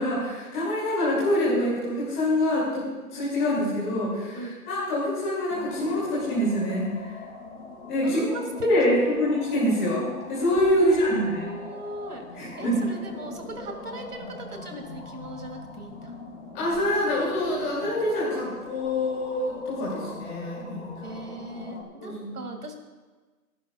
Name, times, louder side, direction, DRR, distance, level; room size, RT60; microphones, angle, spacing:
voice 1, 0.0-7.1 7.9-8.3 8.6-10.0 10.3-11.5 12.3-12.8 16.5-21.2 22.0-22.4, left 1 dB, 10° left, -9 dB, 2.7 m, -25 dB
sound 1, 5.5-21.8, left 3 dB, 50° left, 3.0 m, -41 dB
voice 2, 8.0-9.2 10.8-16.2 21.0-22.7, right 1 dB, 90° right, 4 dB, 2.5 m, -37 dB
23.5 x 11.0 x 2.4 m, 1.3 s
hypercardioid pair, 175°, 45 cm